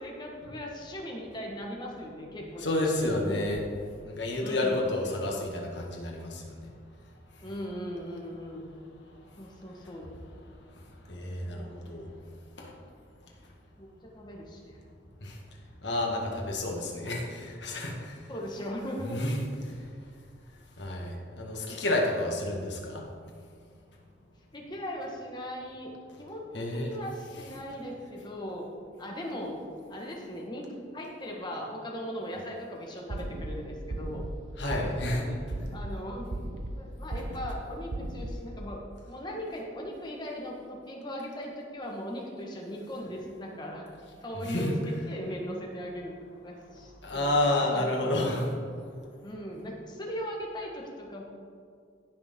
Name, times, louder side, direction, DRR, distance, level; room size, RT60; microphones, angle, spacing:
voice 1, 0.0-3.4 4.4-4.8 7.4-8.6 9.4-10.1 11.5-11.9 13.8-14.8 18.3-19.2 24.5-25.9 26.2-28.7 29.0-29.6 29.9-30.6 30.9-34.2 35.1-35.4 35.7-36.3 36.7-38.8 39.1-43.9 44.2-46.1 46.4-47.8 49.2-51.2, equal, 25° left, -1 dB, 1.5 m, -38 dB
voice 2, 2.6-3.6 4.0-6.4 11.1-12.1 12.6-12.7 15.2-15.4 15.8-18.2 19.1-19.4 20.8-23.1 26.5-26.9 34.6-35.3 44.4-44.7 47.0-48.5, left 1 dB, 65° left, -1 dB, 1.8 m, -30 dB
sound 1, 33.1-33.5 33.9-34.3 34.7-35.1 35.5-35.9 36.3-36.7 37.1-37.5 37.9-38.3, right 1 dB, 65° right, 0.8 m, -36 dB
16.0 x 6.1 x 3.8 m, 2.2 s
head